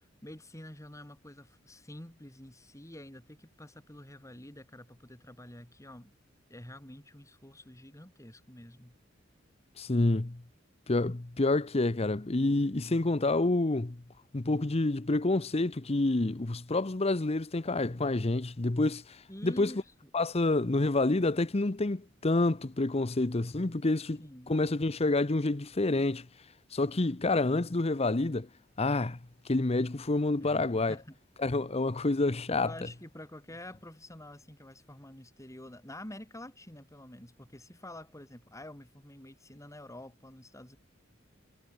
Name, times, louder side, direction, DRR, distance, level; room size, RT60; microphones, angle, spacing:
voice 1, 0.2-6.1 6.5-9.0 19.3-20.1 24.2-24.6 30.4-31.2 32.6-40.8, left 1 dB, 15° left, 3.7 m, -48 dB
voice 2, 9.8-10.4 10.9-14.0 14.3-19.7 20.1-24.2 24.5-26.2 26.7-28.5 28.8-29.2 29.5-31.0 31.4-32.7, left 2 dB, 30° left, 0.8 m, -28 dB
head